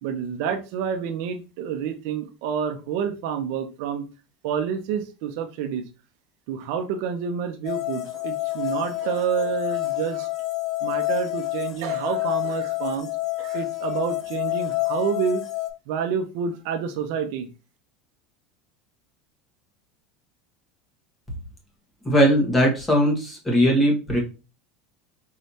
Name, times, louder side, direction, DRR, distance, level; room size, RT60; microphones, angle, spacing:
voice 1, 0.0-4.0 4.4-5.8 6.5-10.3 10.8-13.1 13.4-15.4 15.9-17.4, right 7 dB, 65° right, 7 dB, 0.6 m, -28 dB
sound 1, 7.6-15.7, left 19 dB, 35° left, 0.8 m, -28 dB
voice 2, 22.0-24.2, equal, 10° left, -1 dB, 1.5 m, -19 dB
4.6 x 3.2 x 2.7 m, 0.31 s
supercardioid pair, 150°, 0 cm